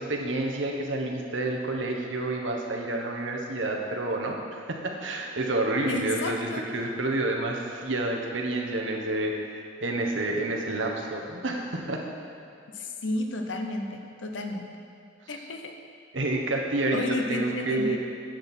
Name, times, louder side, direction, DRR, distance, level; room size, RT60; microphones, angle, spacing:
voice 1, 0.0-4.4 4.7-12.0 16.1-17.0 17.3-18.0, right 2 dB, 85° right, 1 dB, 1.2 m, -29 dB
voice 2, 5.9-6.7 12.7-14.7 15.3-15.7 16.9-18.0, left 2 dB, 75° left, 4 dB, 0.9 m, -32 dB
10.5 x 7.8 x 4.5 m, 2.5 s
head